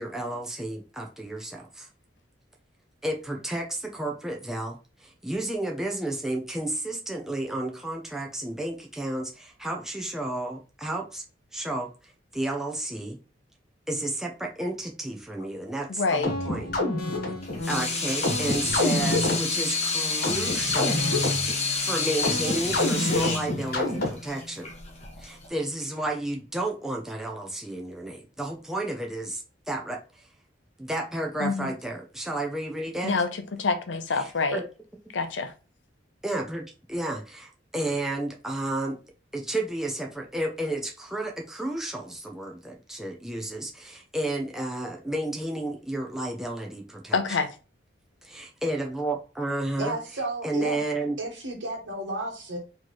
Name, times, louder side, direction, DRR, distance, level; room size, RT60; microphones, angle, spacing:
voice 1, 0.0-1.9 3.0-11.2 11.5-11.9 12.3-13.2 13.9-16.7 17.7-21.0 21.8-24.7 25.2-30.2 30.8-33.2 34.2-34.7 35.1-35.2 36.2-39.0 39.3-47.2 48.2-50.0 50.4-51.2, right 1 dB, 5° right, 0.5 m, -32 dB
voice 2, 15.9-16.3 31.4-31.7 33.0-34.6 35.1-35.5 47.1-47.5, left 4 dB, 80° left, 0.6 m, -27 dB
sound 1, 16.2-24.4, left 2 dB, 55° left, 1.2 m, -28 dB
Water tap faucet / Sink (filling or washing), 17.4-25.5, left 4 dB, 35° left, 1.0 m, -29 dB
voice 3, 49.8-50.8 51.2-52.6, right 2 dB, 75° right, 1.2 m, -32 dB
4.2 x 2.9 x 3.1 m
head